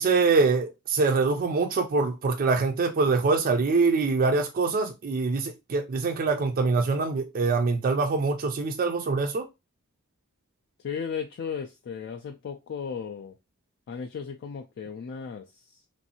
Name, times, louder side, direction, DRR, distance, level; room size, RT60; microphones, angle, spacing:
voice 1, 0.0-9.5, right 4 dB, 40° right, 0.4 m, -24 dB
voice 2, 10.8-13.4 13.9-15.8, left 6 dB, 50° left, 0.3 m, -35 dB
3.1 x 2.6 x 2.7 m
head